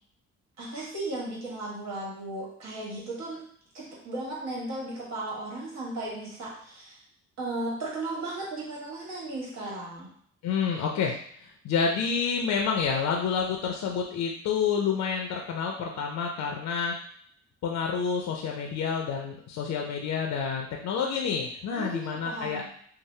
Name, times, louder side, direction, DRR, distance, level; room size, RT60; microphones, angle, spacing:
voice 1, 0.6-3.4 3.7-7.0 7.4-10.1 21.7-22.6, right 2 dB, 60° right, -5 dB, 1.4 m, -35 dB
voice 2, 10.4-16.9 17.6-22.6, left 6 dB, 65° left, 1 dB, 0.5 m, -29 dB
2.8 x 2.0 x 3.1 m, 0.62 s
cardioid pair, 90°, 30 cm